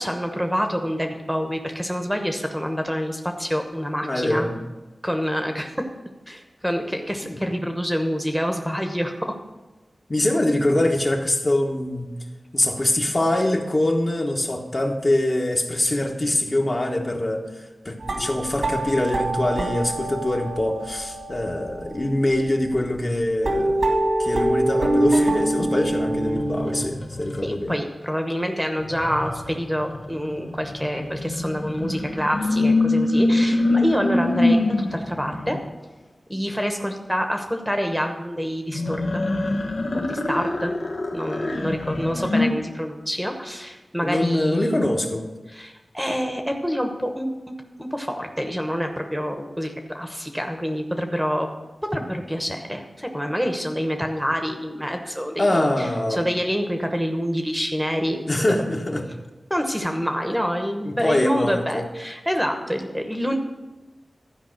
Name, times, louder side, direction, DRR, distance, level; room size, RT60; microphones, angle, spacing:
voice 1, 0.0-4.5 5.0-5.7 6.3-9.3 27.4-35.6 36.3-39.2 39.9-40.7 41.1-44.8 45.5-47.3 47.8-51.5 51.9-58.2 58.7-58.8 59.5-63.4, equal, ahead, 4 dB, 1.0 m, -27 dB
voice 2, 4.0-4.5 7.2-7.4 10.1-12.1 12.5-23.8 24.2-27.8 44.0-45.3 55.4-56.2 58.3-59.0 60.8-61.8, left 1 dB, 35° left, 1 dB, 1.2 m, -23 dB
sound 1, 18.0-23.0 23.4-26.8, right 1 dB, 85° right, 2.0 m, -25 dB
sound 2, 25.8-27.7 28.8-35.6 38.7-42.5, left 2 dB, 80° left, 1.1 m, -25 dB
12.0 x 5.0 x 6.4 m, 1.1 s
wide cardioid pair, 75°, 0 cm